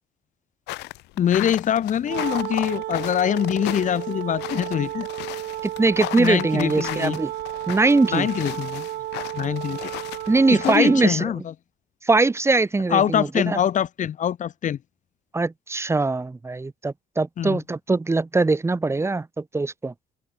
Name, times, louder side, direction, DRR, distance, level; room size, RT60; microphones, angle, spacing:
sound 1, 0.7-10.8, left 20 dB, 90° left, 2.9 m, -35 dB
voice 1, 1.2-5.4 6.1-7.2 8.1-8.9 9.3-9.9 10.5-11.5 12.9-14.8 17.4-17.6, left 9 dB, 50° left, 1.5 m, -24 dB
Wind instrument woodwind instrument, 2.0-11.2, right 14 dB, 70° right, 2.2 m, -33 dB
voice 2, 5.8-7.3 7.7-8.3 10.3-11.3 12.0-13.6 15.3-19.9, right 3 dB, 15° right, 2.1 m, -21 dB
cardioid pair, 110°, 17 cm